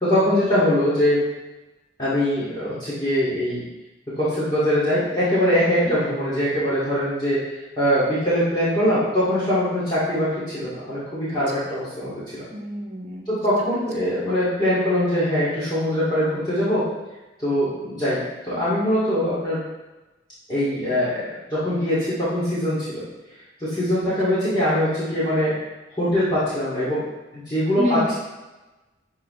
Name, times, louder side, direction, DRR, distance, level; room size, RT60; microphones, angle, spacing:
voice 1, 0.0-1.2 2.0-3.6 4.2-7.4 7.8-12.4 13.3-16.9 17.4-19.6 20.5-23.0 23.6-25.5 26.0-27.0 27.3-28.1, equal, 25° left, -12 dB, 2.3 m, -22 dB
voice 2, 5.6-5.9 12.5-13.3 27.8-28.1, left 1 dB, 35° right, -1 dB, 1.3 m, -28 dB
12.5 x 4.4 x 3.2 m, 1.1 s
head